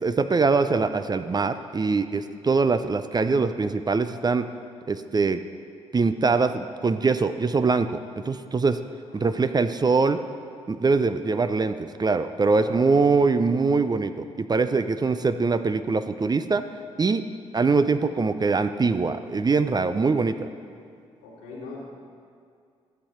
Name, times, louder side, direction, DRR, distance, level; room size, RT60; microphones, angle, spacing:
voice 1, 0.0-4.4 4.9-5.4 5.9-8.0 8.3-8.8 9.1-10.2 10.7-16.6 17.0-17.2 17.5-20.5, right 4 dB, 30° right, 10 dB, 0.5 m, -23 dB
voice 2, 9.0-9.5 12.5-13.0 19.8-20.5 21.2-21.9, left 3 dB, 80° left, -5 dB, 2.3 m, -43 dB
11.5 x 7.3 x 4.4 m, 2.2 s
hypercardioid pair, 40°, 14 cm